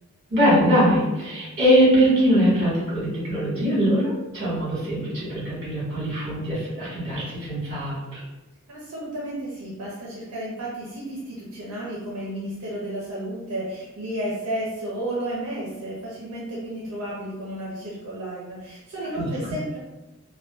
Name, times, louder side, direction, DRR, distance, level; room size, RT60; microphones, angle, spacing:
voice 1, 0.3-8.2 19.1-19.3, equal, 50° right, -8 dB, 1.3 m, -22 dB
voice 2, 8.7-19.8, right 1 dB, 80° right, -6 dB, 0.6 m, -32 dB
2.5 x 2.2 x 2.2 m, 1.0 s
head